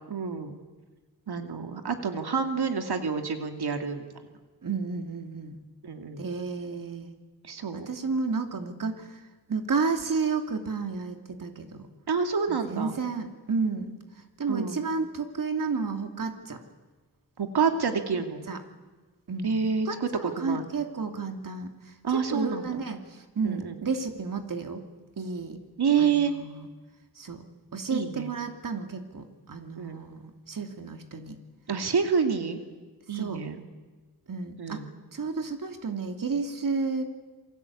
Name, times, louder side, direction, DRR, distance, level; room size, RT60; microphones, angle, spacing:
voice 1, 0.1-0.5 1.3-4.0 5.8-6.2 7.4-7.9 12.1-12.9 14.5-14.8 17.4-18.5 19.4-20.1 20.4-20.6 22.0-22.8 23.4-23.7 25.8-26.3 27.9-28.3 29.8-30.0 31.7-32.6 33.1-33.6 34.6-34.9, right 6 dB, 85° right, 5 dB, 2.5 m, -28 dB
voice 2, 4.6-5.6 6.2-7.2 7.7-9.2 9.5-11.9 12.5-14.0 14.4-16.6 18.1-18.6 19.3-24.8 25.2-25.6 26.0-26.7 27.2-27.4 27.7-31.4 33.1-33.4 34.3-37.0, right 4 dB, 60° right, 5 dB, 2.8 m, -32 dB
28.0 x 23.5 x 8.6 m, 1.3 s
wide cardioid pair, 120°, 38 cm